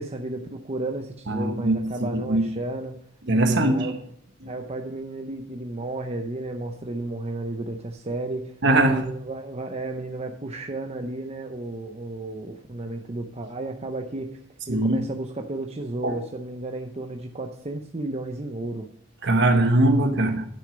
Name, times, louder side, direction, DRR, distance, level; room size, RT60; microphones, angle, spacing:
voice 1, 0.0-2.9 3.4-4.0 4.5-8.5 8.8-14.4 14.7-18.9, right 2 dB, 30° right, 0.7 m, -33 dB
voice 2, 1.3-2.4 3.3-3.9 4.4-4.5 8.6-9.1 14.7-15.0 16.0-16.2 19.2-20.4, right 1 dB, 60° right, 1.4 m, -21 dB
10.5 x 6.3 x 5.1 m
head